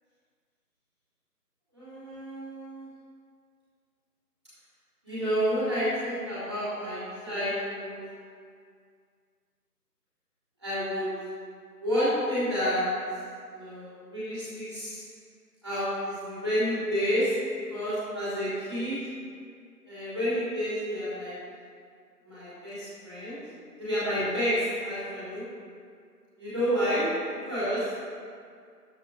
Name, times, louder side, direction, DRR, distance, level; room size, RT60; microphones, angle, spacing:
voice 1, 1.7-2.9 5.0-8.0 10.6-11.1 11.8-12.9 13.5-15.0 15.6-17.3 17.7-19.0 19.8-21.3 22.2-23.4 23.8-25.4 26.4-27.1 27.5-27.9, equal, 15° right, -13 dB, 2.6 m, -29 dB
13.0 x 10.5 x 2.3 m, 2.1 s
figure-of-eight pair, 175°, 49 cm